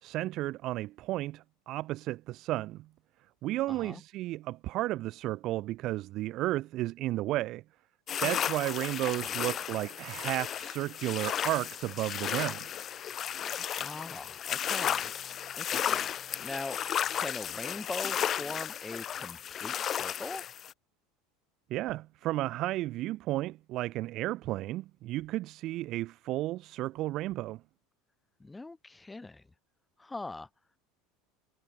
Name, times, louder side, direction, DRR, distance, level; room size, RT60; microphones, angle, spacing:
voice 1, 0.0-2.9 3.4-7.6 8.2-12.7 21.7-27.6, right 16 dB, 50° right, 0.8 m, -33 dB
voice 2, 3.7-4.0 8.4-8.6 9.1-9.4 13.4-15.1 15.6-16.1 16.4-16.8 17.1-20.4 28.4-29.4 30.0-30.5, left 2 dB, 10° left, 3.5 m, -42 dB
sound 1, 8.1-20.7, left 9 dB, 35° left, 0.9 m, -34 dB
supercardioid pair, 130°, 0 cm